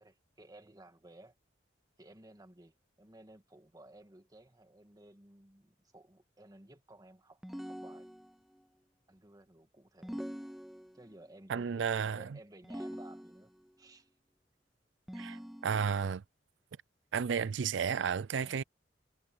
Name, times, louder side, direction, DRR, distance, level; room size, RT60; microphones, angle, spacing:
voice 1, 0.0-1.3 2.0-8.1 9.1-10.3 10.9-13.5 13.8-14.1 18.4-18.6, right 1 dB, 20° right, 1.5 m, -56 dB
sound 1, 7.4-8.6 10.0-11.2 12.6-13.7 15.1-16.1, equal, ahead, 0.4 m, -44 dB
voice 2, 11.5-12.3 15.2-16.2 17.1-18.6, right 6 dB, 75° right, 0.4 m, -32 dB
head